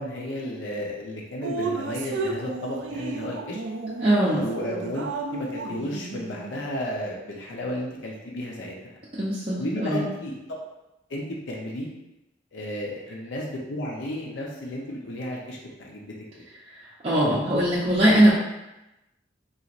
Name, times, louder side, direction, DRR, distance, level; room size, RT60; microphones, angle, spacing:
voice 1, 0.0-3.6 4.3-8.7 9.6-10.4 11.1-11.9 12.5-16.1, left 1 dB, 80° left, -2 dB, 0.6 m, -33 dB
Drip, 1.4-6.6, right 3 dB, 85° right, 0.4 m, -33 dB
voice 2, 4.0-4.4 9.2-10.0 17.0-18.3, right 1 dB, 30° right, -9 dB, 0.6 m, -20 dB
4.0 x 2.9 x 2.5 m, 0.96 s
head